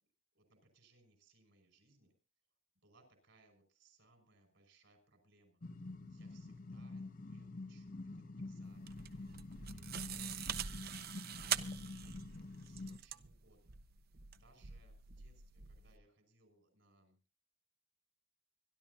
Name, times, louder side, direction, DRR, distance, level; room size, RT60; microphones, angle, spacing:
voice 1, 0.3-2.2 2.8-9.3 9.7-10.9 11.4-11.9 12.3-13.8 14.3-17.2, right 2 dB, 65° right, 6 dB, 5.5 m, -69 dB
sound 1, 5.6-13.0, left 2 dB, 40° left, 0.8 m, -47 dB
sound 2, 8.6-16.0, right 9 dB, 50° right, 0.7 m, -44 dB
25.0 x 12.0 x 2.7 m, 0.32 s
head